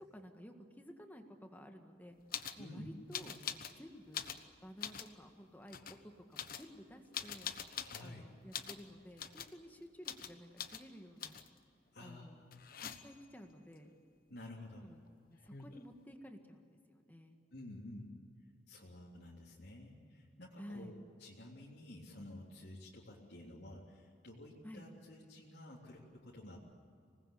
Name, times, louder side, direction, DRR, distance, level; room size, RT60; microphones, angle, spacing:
voice 1, 0.1-2.2 2.6-4.2 4.6-7.5 8.0-11.4 12.0-12.4 12.8-13.9 14.8-17.4 20.6-21.0 24.6-24.9, equal, 10° left, 4 dB, 1.8 m, -53 dB
sound 1, 2.3-2.6 3.1-3.8 4.1-5.1 5.7-6.0 6.3-8.1 8.5-8.8 9.2-9.6 10.0-10.3 10.6-10.8 11.2-11.6 12.5-13.3 15.1-15.2 15.3-15.9, left 8 dB, 50° left, 1.1 m, -44 dB
voice 2, 7.8-8.2 11.9-12.6 14.3-14.9 17.5-18.1 18.7-26.6, left 1 dB, 65° left, -4 dB, 3.4 m, -52 dB
26.0 x 20.0 x 8.4 m, 2.4 s
head